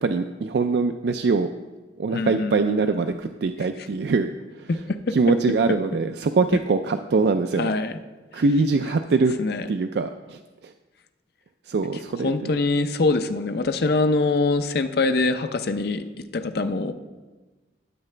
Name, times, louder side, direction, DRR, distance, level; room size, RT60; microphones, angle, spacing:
voice 1, 0.0-1.5 2.0-4.3 4.6-4.7 5.1-7.7 8.3-9.3 9.7-10.7 11.7-12.6, right 4 dB, 65° right, 7 dB, 0.4 m, -23 dB
voice 2, 2.1-3.0 4.9-5.1 7.6-8.0 9.4-9.7 12.1-16.0 16.3-16.9, left 3 dB, 60° left, 9 dB, 0.6 m, -24 dB
12.0 x 9.0 x 3.3 m, 1.2 s
head